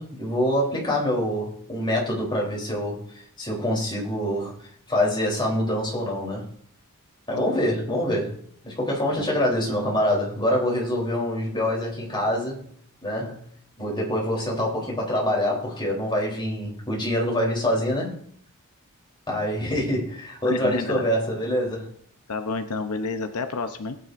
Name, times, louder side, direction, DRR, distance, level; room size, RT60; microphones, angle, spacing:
voice 1, 0.0-3.0 3.4-4.5 4.9-6.4 7.3-8.3 8.6-12.7 13.0-13.4 13.8-18.1 19.3-21.9, left 1 dB, 20° left, -3 dB, 3.5 m, -25 dB
voice 2, 20.4-21.0 22.3-24.0, left 4 dB, 80° left, 7 dB, 0.8 m, -29 dB
18.5 x 9.6 x 2.6 m, 0.63 s
head